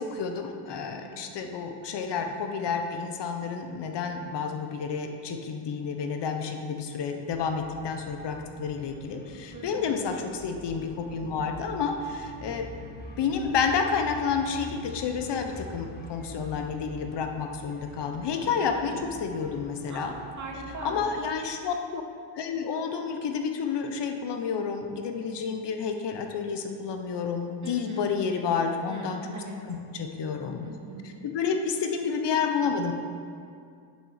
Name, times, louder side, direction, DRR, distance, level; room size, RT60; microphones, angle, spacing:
voice 1, 0.0-18.9 19.2-20.1 20.8-22.0 22.4-29.2 29.7-30.7 31.3-32.9, left 6 dB, 60° left, 5 dB, 1.1 m, -30 dB
voice 2, 0.7-1.2 9.5-9.9 18.7-19.1 19.9-21.0 27.6-28.1 28.8-29.6 30.6-31.1, right 3 dB, 35° right, -2 dB, 2.3 m, -41 dB
sound 1, 7.3-21.2, left 2 dB, 20° left, 1.3 m, -45 dB
8.9 x 7.3 x 6.5 m, 2.3 s
cardioid pair, 100°, 48 cm